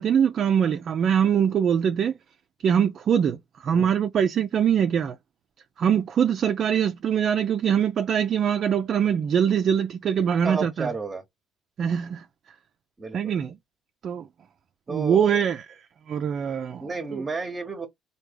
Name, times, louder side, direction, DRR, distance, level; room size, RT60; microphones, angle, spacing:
voice 1, 0.0-2.1 2.6-5.2 5.8-10.9 11.8-12.2 13.1-13.5 14.0-14.2 14.9-15.8 16.1-16.8 17.1-17.2, right 8 dB, 55° right, 0.4 m, -23 dB
voice 2, 10.4-11.2 13.0-13.4 14.9-15.2 16.8-17.9, right 4 dB, 25° right, 0.8 m, -31 dB
3.3 x 2.2 x 3.3 m
supercardioid pair, 75°, 0 cm